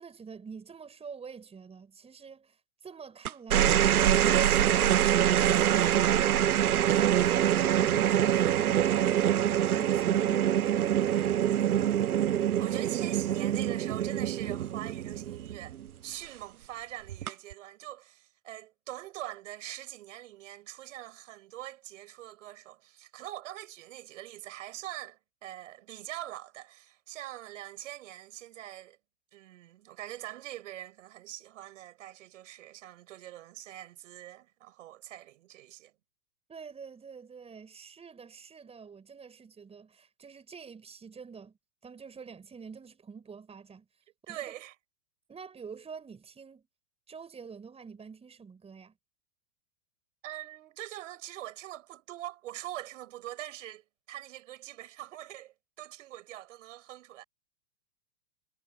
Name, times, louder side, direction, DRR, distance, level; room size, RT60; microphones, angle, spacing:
voice 1, 0.0-6.3 6.7-9.5 9.7-12.1 36.5-41.6 41.8-43.9 44.3-44.5 45.3-46.7 47.1-48.9, right 5 dB, 15° right, 5.5 m, -46 dB
sound 1, 3.2-15.9 17.1-17.5, right 11 dB, 85° right, 0.6 m, -25 dB
voice 2, 6.8-7.4 12.6-29.0 29.3-35.9 44.3-44.8 50.2-57.2, right 14 dB, 60° right, 6.9 m, -43 dB
hypercardioid pair, 110°, 43 cm